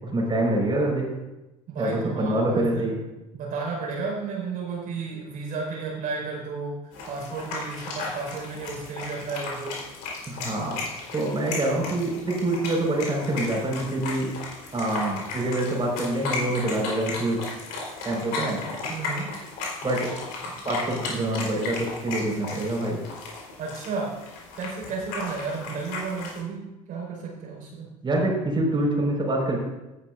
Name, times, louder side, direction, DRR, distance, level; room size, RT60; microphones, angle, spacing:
voice 1, 0.0-1.0 1.8-3.0 10.3-10.8 11.1-14.3 14.7-17.4 18.0-18.6 19.8-20.1 20.6-23.0 28.0-29.6, right 1 dB, 25° right, -2 dB, 4.9 m, -26 dB
voice 2, 1.7-2.9 3.3-6.8 7.1-9.8 18.9-19.3 20.4-20.5 23.6-24.2 24.5-28.0, right 4 dB, 50° right, -2 dB, 4.9 m, -33 dB
sound 1, 6.9-26.4, left 3 dB, 65° left, 4.1 m, -35 dB
17.5 x 10.5 x 2.6 m, 1.0 s
hypercardioid pair, 65°, 17 cm